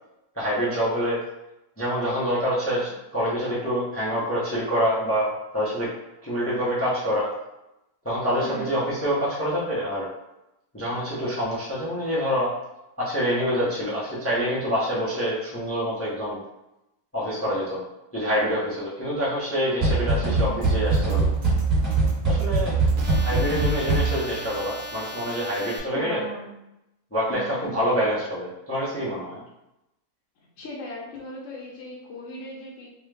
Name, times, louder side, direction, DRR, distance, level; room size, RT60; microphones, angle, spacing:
voice 1, 0.3-1.2 1.8-5.9 6.2-7.3 8.0-10.1 10.7-12.5 13.0-16.4 17.1-17.8 18.1-21.3 22.3-22.7 23.2-26.2 27.1-29.4, equal, 20° left, -8 dB, 0.4 m, -26 dB
voice 2, 8.4-8.7 20.2-20.7 25.9-26.5 27.3-27.7 30.6-32.9, equal, 60° left, -5 dB, 1.0 m, -38 dB
sound 1, 19.8-24.4, right 3 dB, 25° right, 1.4 m, -22 dB
sound 2, 20.6-25.8, equal, 75° right, 1.1 m, -38 dB
3.1 x 2.3 x 3.2 m, 0.91 s
omnidirectional pair, 1.8 m